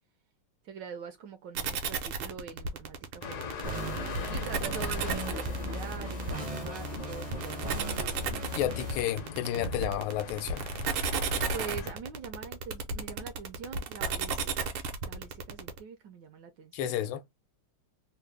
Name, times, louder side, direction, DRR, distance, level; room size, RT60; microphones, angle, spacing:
voice 1, 0.6-3.6 4.3-8.2 11.5-14.8 15.1-16.9, right 6 dB, 75° right, 1.1 m, -44 dB
sound 1, 1.6-15.8, right 5 dB, 90° right, 1.6 m, -33 dB
sound 2, 3.2-11.9, left 5 dB, 65° left, 1.1 m, -41 dB
sound 3, 3.6-9.0, right 1 dB, 50° right, 0.5 m, -37 dB
voice 2, 8.5-10.6 16.7-17.2, left 11 dB, 85° left, 1.4 m, -31 dB
3.7 x 2.1 x 3.3 m
omnidirectional pair, 2.3 m